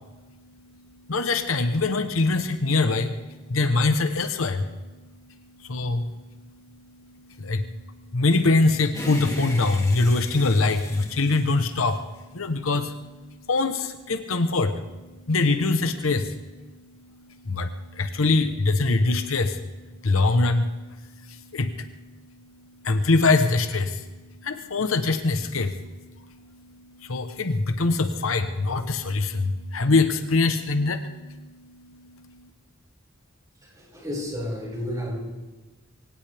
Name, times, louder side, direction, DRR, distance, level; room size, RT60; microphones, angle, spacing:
voice 1, 1.1-3.2 3.5-4.7 5.6-6.1 7.0-12.1 12.3-16.5 17.0-21.9 22.8-24.1 24.4-32.5, left 3 dB, 75° left, 9 dB, 1.0 m, -24 dB
sound 1, 8.9-12.4, left 1 dB, 15° left, 2.5 m, -38 dB
voice 2, 33.6-35.2, left 1 dB, 20° right, -4 dB, 5.8 m, -32 dB
23.5 x 17.0 x 3.5 m, 1.2 s
head